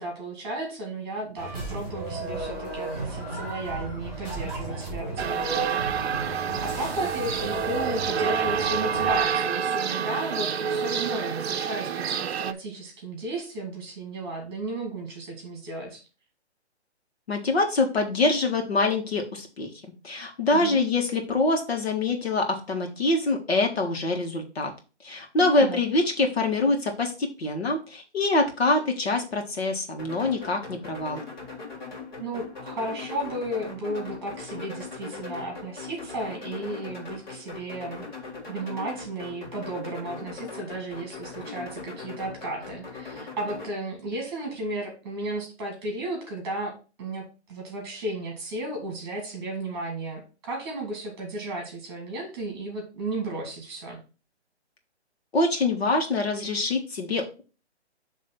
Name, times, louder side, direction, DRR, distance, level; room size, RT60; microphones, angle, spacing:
voice 1, 0.0-6.2 6.6-16.0 20.5-20.8 25.4-25.8 32.2-38.0 38.5-54.0, right 2 dB, 20° right, 2 dB, 2.0 m, -34 dB
sound 1, 1.4-9.7, right 2 dB, ahead, 3.8 m, -34 dB
sound 2, 5.2-12.5, right 7 dB, 65° right, 0.6 m, -28 dB
voice 2, 17.3-19.7 20.0-24.7 25.0-31.2 55.3-57.4, left 2 dB, 60° left, 3 dB, 1.8 m, -25 dB
sound 3, 30.0-43.7, left 4 dB, 40° left, 2.1 m, -40 dB
7.2 x 3.3 x 5.9 m, 0.34 s
hypercardioid pair, 175°, 34 cm